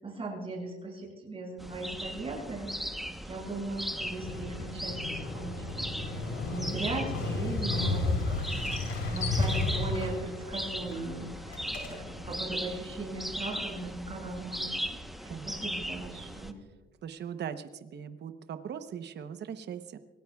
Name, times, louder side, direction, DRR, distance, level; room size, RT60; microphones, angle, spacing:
voice 1, 0.0-2.7 3.2-6.1 6.4-14.7 15.4-16.6, right 2 dB, 25° right, -2 dB, 6.3 m, -38 dB
sound 1, 1.6-16.5, equal, ahead, 1.0 m, -38 dB
Motorcycle, 4.0-12.3, left 2 dB, 70° left, 4.7 m, -33 dB
voice 2, 15.2-15.6 17.0-20.0, right 8 dB, 55° right, 9 dB, 0.9 m, -40 dB
25.5 x 18.5 x 2.4 m, 1.2 s
cardioid pair, 110°, 21 cm